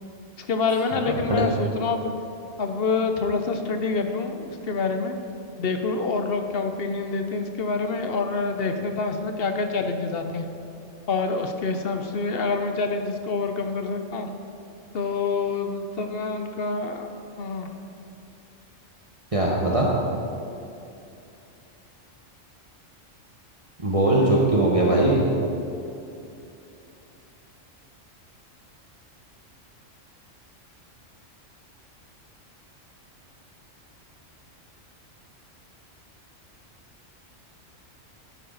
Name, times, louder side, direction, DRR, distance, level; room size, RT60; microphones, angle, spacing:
voice 1, 0.4-2.1 2.6-5.1 5.6-10.4 11.1-14.3 14.9-17.1 17.4-17.7, left 4 dB, 55° left, 6 dB, 0.8 m, -26 dB
voice 2, 19.3-19.9 23.8-25.2, right 1 dB, 30° right, -4 dB, 1.2 m, -20 dB
11.0 x 9.1 x 4.0 m, 2.7 s
omnidirectional pair, 1.3 m